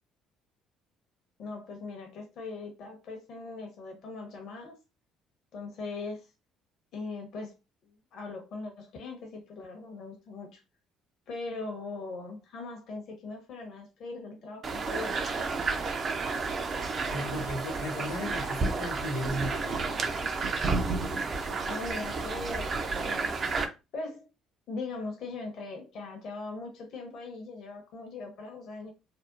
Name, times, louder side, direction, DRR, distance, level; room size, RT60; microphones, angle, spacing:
voice 1, 1.4-4.8 5.5-6.3 6.9-7.5 8.1-10.6 11.3-15.6 21.7-23.4 23.9-24.3 24.7-28.9, left 3 dB, 60° left, 0.6 m, -40 dB
sound 1, 14.6-23.7, right 4 dB, 45° right, 0.5 m, -31 dB
voice 2, 17.1-20.1, left 1 dB, 85° left, 0.8 m, -36 dB
2.7 x 2.0 x 2.5 m
hypercardioid pair, 55°, 0 cm